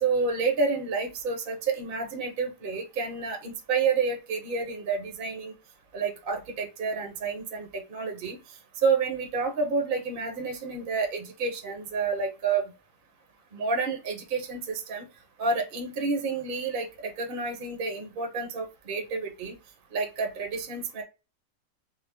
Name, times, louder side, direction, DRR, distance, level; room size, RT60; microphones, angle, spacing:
voice 1, 0.0-5.5 5.9-8.4 8.8-12.7 13.5-15.1 15.4-19.6 19.9-21.0, right 4 dB, 40° right, 3 dB, 0.9 m, -29 dB
3.8 x 2.0 x 3.4 m, 0.28 s
omnidirectional pair, 1.8 m